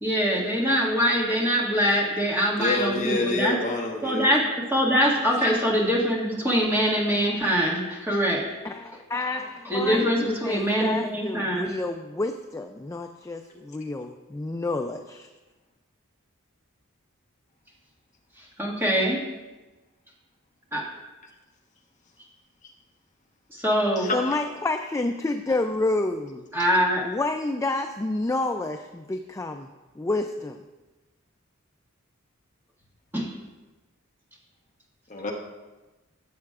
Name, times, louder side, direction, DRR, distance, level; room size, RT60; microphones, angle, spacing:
voice 1, 0.0-3.6 4.0-8.4 9.7-11.7 18.4-19.2 20.7-20.8 23.5-24.1 26.5-27.0 33.1-33.3, equal, 10° right, -4 dB, 1.7 m, -23 dB
voice 2, 2.6-4.2 5.4-5.5 22.6-22.7 24.0-24.4 35.1-35.3, left 2 dB, 35° left, 1 dB, 1.0 m, -27 dB
voice 3, 8.6-15.3 24.1-26.5 27.0-29.7 30.0-30.6, left 2 dB, 15° left, 5 dB, 0.3 m, -29 dB
14.5 x 7.5 x 2.4 m, 1.2 s
head